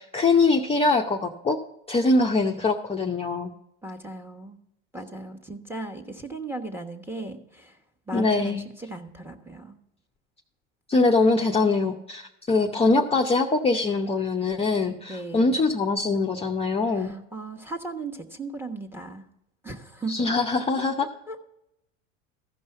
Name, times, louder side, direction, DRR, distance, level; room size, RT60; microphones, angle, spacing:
voice 1, 0.0-1.6 1.9-3.5 8.1-8.6 10.9-17.2 20.1-21.1, left 3 dB, 15° left, 0 dB, 0.7 m, -23 dB
voice 2, 3.8-4.6 4.9-7.8 8.1-9.8 15.1-15.6 16.9-19.2 19.6-20.3 21.3-21.4, right 2 dB, 5° right, 3 dB, 1.2 m, -37 dB
14.5 x 5.4 x 5.7 m, 0.83 s
hypercardioid pair, 90°, 37 cm